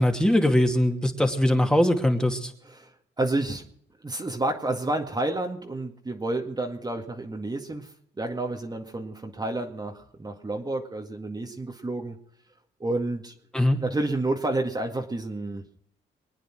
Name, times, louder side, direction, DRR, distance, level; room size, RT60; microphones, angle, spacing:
voice 1, 0.0-2.5 13.5-13.8, left 1 dB, 5° left, 4 dB, 2.5 m, -21 dB
voice 2, 2.6-3.6 4.0-12.2 12.8-13.3 13.8-15.6, right 2 dB, 20° right, 2 dB, 2.0 m, -30 dB
24.0 x 9.2 x 6.1 m, 0.67 s
cardioid pair, 90°, 20 cm